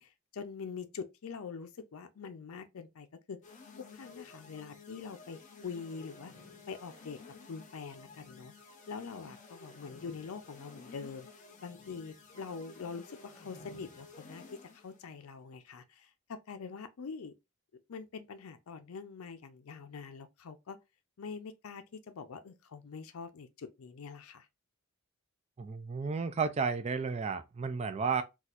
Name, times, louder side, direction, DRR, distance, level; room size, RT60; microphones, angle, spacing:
voice 1, 0.0-3.4 3.9-6.3 6.7-7.2 7.5-8.5 8.9-11.3 11.6-17.3 17.9-20.8 21.2-24.5, left 5 dB, 85° left, 0.5 m, -44 dB
sound 1, 3.4-15.0, left 4 dB, 35° left, 0.7 m, -53 dB
voice 2, 25.6-28.2, right 5 dB, 30° right, 0.3 m, -32 dB
4.2 x 2.3 x 2.4 m
head